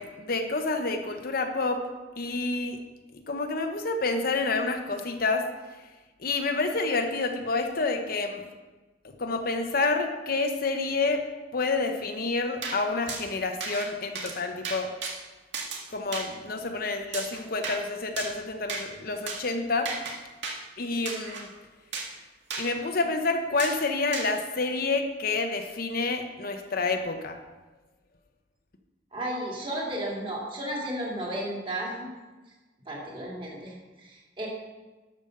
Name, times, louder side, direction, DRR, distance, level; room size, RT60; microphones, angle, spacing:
voice 1, 0.0-1.8 2.2-2.8 3.3-5.4 6.2-8.4 9.0-11.2 11.5-14.9 15.9-19.9 20.8-21.5 22.6-27.4, left 3 dB, 55° left, 5 dB, 0.9 m, -28 dB
sound 1, 12.6-12.8 13.1-13.2 13.6-13.9 14.2-14.4 14.6-15.1 15.5-15.8 16.1-16.3 17.1-17.8 18.2-18.4 18.7-18.8 19.3-19.4 19.9-20.1 20.4-20.6 21.1-21.4 21.9-22.1 22.5-22.7 23.6-23.8 24.1-24.3, right 4 dB, 75° right, 1.9 m, -34 dB
voice 2, 29.1-32.1 32.9-34.5, right 1 dB, 30° right, -3 dB, 2.7 m, -33 dB
12.0 x 5.3 x 6.5 m, 1.2 s
head